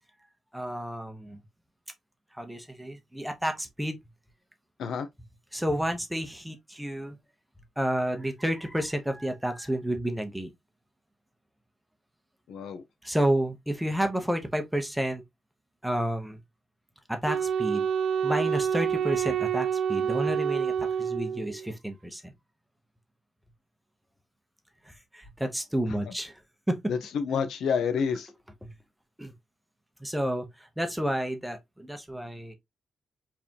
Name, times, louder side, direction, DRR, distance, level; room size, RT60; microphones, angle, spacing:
voice 1, 0.5-1.4 2.3-4.0 5.5-7.2 7.8-10.5 13.0-15.2 15.8-16.4 17.1-17.9 18.2-22.3 24.9-26.4 26.7-26.8 28.6-28.7 29.2-29.3 30.0-32.6, right 1 dB, 5° right, 0.9 m, -30 dB
voice 2, 12.5-12.8 25.9-26.0 26.9-28.3, left 6 dB, 80° left, 1.0 m, -29 dB
Wind instrument woodwind instrument, 17.3-21.7, right 7 dB, 60° right, 0.5 m, -28 dB
4.7 x 3.6 x 2.9 m
wide cardioid pair, 160°, 0 cm